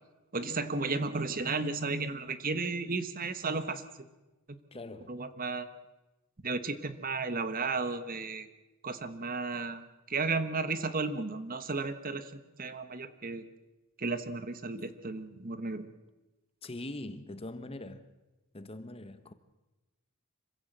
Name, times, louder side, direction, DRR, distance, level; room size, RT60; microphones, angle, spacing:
voice 1, 0.3-3.8 5.1-5.7 6.4-8.5 8.8-13.4 14.0-15.9, right 3 dB, 40° right, 1.2 m, -34 dB
voice 2, 4.7-5.2 16.6-18.1 18.5-19.3, left 2 dB, 25° left, 1.1 m, -42 dB
26.0 x 15.5 x 7.9 m
head